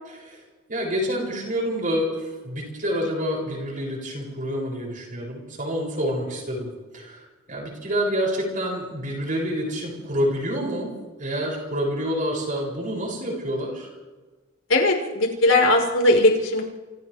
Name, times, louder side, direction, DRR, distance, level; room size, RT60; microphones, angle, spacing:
voice 1, 0.7-7.2 7.5-10.9 11.2-13.9, equal, 40° right, -2 dB, 7.9 m, -27 dB
voice 2, 14.7-16.6, left 2 dB, 85° left, 0 dB, 5.1 m, -19 dB
29.0 x 28.5 x 3.6 m, 1.3 s
head